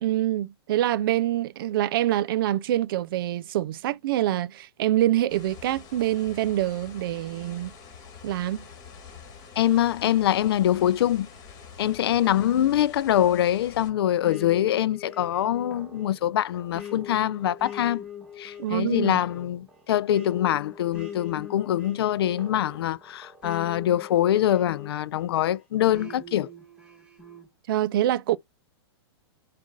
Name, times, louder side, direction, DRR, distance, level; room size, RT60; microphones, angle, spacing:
voice 1, 0.0-7.7 8.2-8.6 18.6-19.2 27.7-28.4, right 13 dB, 60° right, 0.4 m, -25 dB
sound 1, 5.3-13.9, left 6 dB, 30° left, 2.0 m, -46 dB
voice 2, 9.6-11.3 11.8-18.0 18.4-26.5, left 12 dB, 70° left, 0.4 m, -24 dB
sound 2, 14.2-25.3 25.9-27.5, left 6 dB, 5° right, 1.6 m, -42 dB
7.2 x 2.5 x 2.4 m
hypercardioid pair, 130°, 13 cm